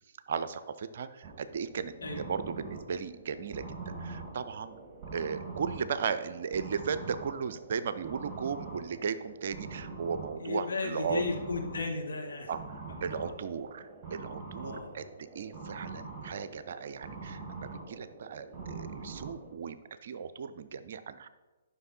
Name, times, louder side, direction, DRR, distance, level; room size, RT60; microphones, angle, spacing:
voice 1, 0.3-4.8 5.1-11.2 12.5-15.1 15.3-19.8 20.0-21.3, right 6 dB, 50° right, 13 dB, 0.5 m, -36 dB
sound 1, 1.2-19.6, right 4 dB, 25° right, 1.8 m, -44 dB
voice 2, 10.4-12.5 14.6-15.1, left 4 dB, 60° left, 2 dB, 1.6 m, -34 dB
11.0 x 5.8 x 4.2 m, 1.2 s
figure-of-eight pair, 125°, 0 cm